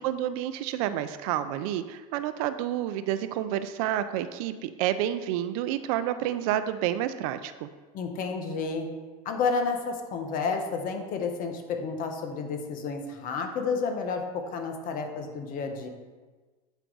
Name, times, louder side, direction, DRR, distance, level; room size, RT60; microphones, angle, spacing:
voice 1, 0.0-7.7, right 11 dB, 65° right, 12 dB, 0.5 m, -29 dB
voice 2, 7.9-8.9 9.2-15.9, left 5 dB, 45° left, 5 dB, 1.1 m, -31 dB
8.1 x 4.5 x 3.9 m, 1.3 s
hypercardioid pair, 105°, 20 cm